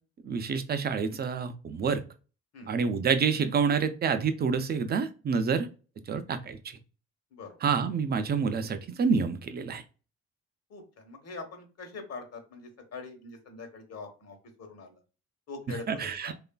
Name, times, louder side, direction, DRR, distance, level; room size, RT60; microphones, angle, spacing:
voice 1, 0.2-2.0 2.7-5.7 6.1-6.6 7.6-9.8 15.9-16.3, right 5 dB, 35° right, 10 dB, 0.4 m, -28 dB
voice 2, 10.7-14.9 15.5-16.3, left 3 dB, 55° left, 4 dB, 1.0 m, -43 dB
3.0 x 2.4 x 2.2 m, 0.34 s
cardioid pair, 90°, 30 cm